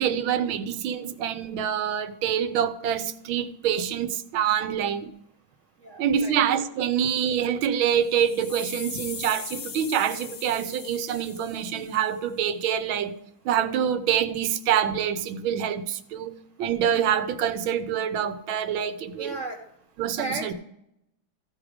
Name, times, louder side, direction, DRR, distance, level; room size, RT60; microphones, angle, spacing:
voice 1, 0.0-5.1 6.0-13.2 13.4-16.3 16.6-19.4 20.0-20.5, right 9 dB, 75° right, 1.5 m, -26 dB
voice 2, 5.8-6.3 8.9-9.1 19.2-19.6 20.1-20.5, right 3 dB, 55° right, 0.8 m, -34 dB
sound 1, 7.9-12.1, left 6 dB, 75° left, 0.6 m, -40 dB
14.5 x 4.9 x 5.0 m
omnidirectional pair, 2.3 m